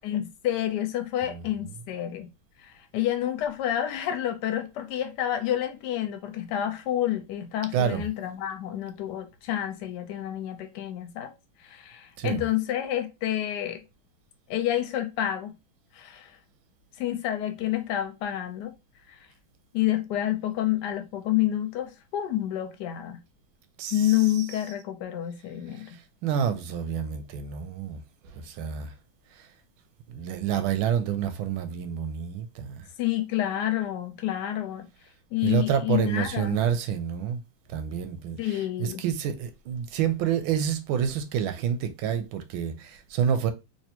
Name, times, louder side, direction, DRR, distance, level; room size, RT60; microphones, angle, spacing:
voice 1, 0.0-2.3 2.6-11.3 11.6-13.8 14.5-15.5 15.9-16.3 17.0-18.7 19.1-19.2 19.7-23.2 23.9-25.9 33.0-34.8 35.3-36.6 38.4-39.0, left 12 dB, 70° left, 1.1 m, -29 dB
voice 2, 1.2-1.7 7.7-8.1 12.2-12.4 23.8-24.7 25.7-28.9 30.1-32.9 35.4-37.4 37.7-43.5, right 8 dB, 90° right, 1.4 m, -29 dB
3.4 x 2.9 x 2.8 m
omnidirectional pair, 2.2 m